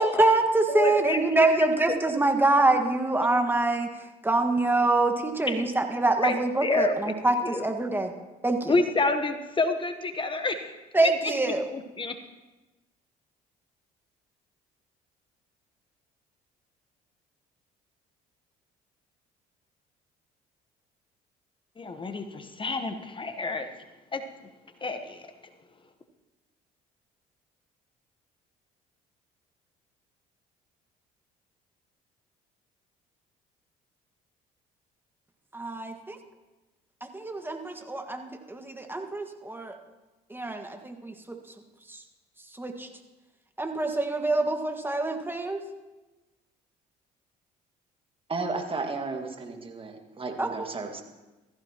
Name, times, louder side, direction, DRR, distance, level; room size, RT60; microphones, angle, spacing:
voice 1, 0.0-8.1 8.4-8.8 10.9-11.7 35.5-36.2 37.0-39.8 40.3-41.4 41.9-42.0 42.5-42.9 43.6-45.6 50.4-50.7, right 2 dB, 10° right, 5 dB, 1.7 m, -25 dB
voice 2, 0.7-1.5 6.2-6.3 6.6-7.0 7.5-7.6 8.7-10.7 11.7-12.1 21.8-23.7 24.1-24.2 24.8-25.3, left 3 dB, 30° left, 8 dB, 1.1 m, -28 dB
voice 3, 48.3-51.0, right 3 dB, 30° right, 3 dB, 2.0 m, -33 dB
16.0 x 14.5 x 3.0 m, 1.1 s
hypercardioid pair, 65°, 18 cm